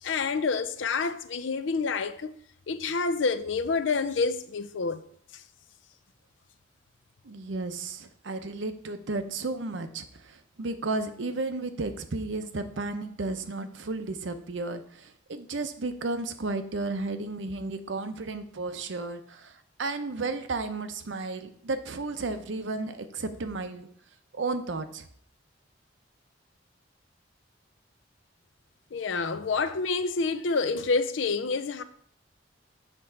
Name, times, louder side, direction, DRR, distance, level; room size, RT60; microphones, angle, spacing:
voice 1, 0.0-2.3 2.7-5.0 28.9-31.8, left 4 dB, 75° left, 0.5 m, -28 dB
voice 2, 7.2-23.9 24.3-25.1, right 3 dB, 75° right, 0.7 m, -33 dB
6.8 x 3.6 x 5.7 m
head